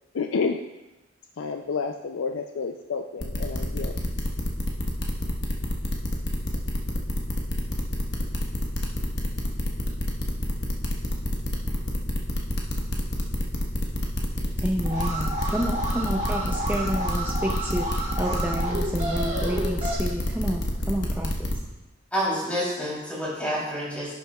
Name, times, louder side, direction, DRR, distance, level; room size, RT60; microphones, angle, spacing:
voice 1, 0.1-0.6 1.4-4.0, left 5 dB, 85° left, 5 dB, 0.4 m, -29 dB
sound 1, 3.2-21.5, left 1 dB, 60° left, 1.2 m, -27 dB
voice 2, 14.6-21.3, equal, 10° right, 0 dB, 0.4 m, -30 dB
Alarm, 14.8-19.9, right 1 dB, 35° right, 2.0 m, -31 dB
voice 3, 22.1-24.1, equal, 5° left, -7 dB, 3.2 m, -28 dB
11.5 x 8.4 x 2.3 m, 1.0 s
head